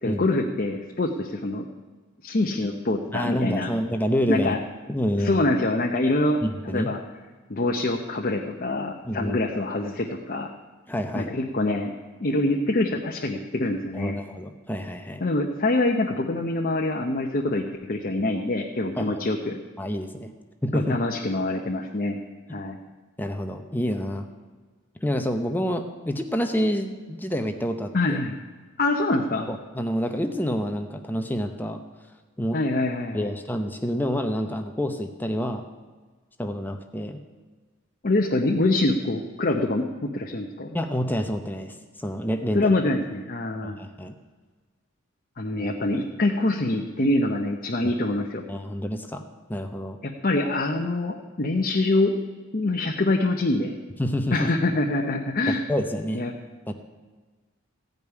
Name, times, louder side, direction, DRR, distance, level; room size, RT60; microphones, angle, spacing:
voice 1, 0.0-1.7 2.2-3.7 4.3-4.6 5.2-6.4 6.6-7.0 7.5-10.5 11.1-11.9 12.2-14.2 15.2-19.6 20.7-22.2 22.5-22.8 27.9-28.3 28.8-29.5 32.5-33.4 38.0-40.8 42.5-43.8 45.4-48.4 50.0-52.1 52.5-53.7 54.3-55.6 56.1-56.3, left 2 dB, 40° left, 1 dB, 0.8 m, -25 dB
voice 2, 3.1-4.5 4.9-5.5 6.4-6.9 9.0-9.4 10.9-11.3 13.9-15.2 19.0-19.2 19.8-20.3 20.6-21.0 23.2-24.3 25.0-28.2 29.5-31.8 32.4-32.6 33.1-35.6 36.4-37.2 40.7-42.8 43.6-44.1 48.5-49.2 49.5-50.0 54.0-54.5 55.7-56.3 56.7-56.8, equal, 10° left, 5 dB, 0.7 m, -28 dB
16.0 x 5.3 x 9.5 m, 1.4 s
head